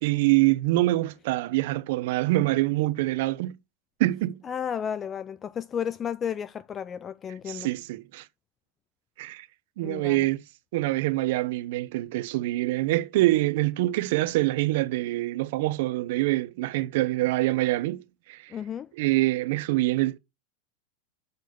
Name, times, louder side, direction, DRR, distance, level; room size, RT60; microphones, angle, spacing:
voice 1, 0.0-3.6 4.0-4.4 7.5-8.3 9.2-9.5 9.8-10.4 10.7-18.0 18.3-18.5 19.0-20.2, right 18 dB, 65° right, 1.0 m, -25 dB
voice 2, 4.4-7.7 9.8-10.3 18.5-18.9, left 8 dB, 25° left, 0.4 m, -33 dB
6.8 x 6.2 x 7.0 m
hypercardioid pair, 120°, 0 cm